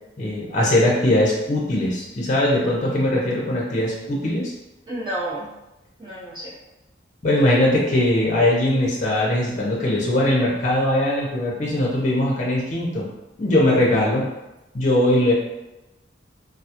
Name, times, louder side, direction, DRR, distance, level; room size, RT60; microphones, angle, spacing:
voice 1, 0.2-4.5 7.2-13.1 13.4-14.3 14.7-15.3, left 1 dB, 40° left, -4 dB, 0.5 m, -20 dB
voice 2, 4.9-5.5 6.0-6.6, right 1 dB, 25° right, -10 dB, 0.9 m, -30 dB
2.3 x 2.0 x 2.8 m, 0.97 s
head